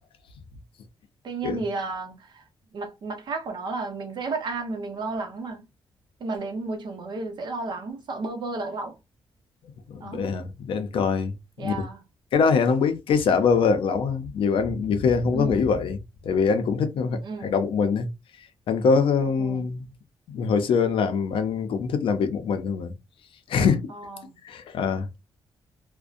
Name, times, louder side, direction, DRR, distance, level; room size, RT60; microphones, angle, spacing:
voice 1, 1.2-2.4 2.7-5.6 6.2-9.0 10.0-10.3 11.6-12.0 15.3-15.7 17.2-17.5 19.4-19.7 23.9-24.3, right 3 dB, 55° right, 0.7 m, -32 dB
voice 2, 9.9-11.7 12.3-16.0 16.3-18.1 18.7-19.9 20.3-22.9 23.5-23.9 24.4-25.1, left 5 dB, 75° left, 0.5 m, -23 dB
2.6 x 2.1 x 2.4 m
wide cardioid pair, 155°, 9 cm